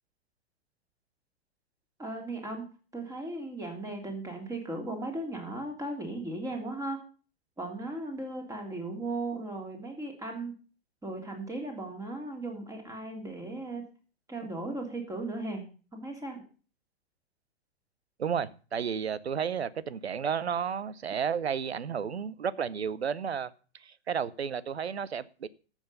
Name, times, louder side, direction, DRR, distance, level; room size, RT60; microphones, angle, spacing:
voice 1, 2.0-7.0 7.6-10.5 11.0-13.9 14.3-15.6 15.9-16.4, right 2 dB, 10° right, 3.2 m, -37 dB
voice 2, 18.2-23.5 23.8-25.5, right 7 dB, 75° right, 0.8 m, -32 dB
13.5 x 7.3 x 5.5 m
figure-of-eight pair, 105°, 32 cm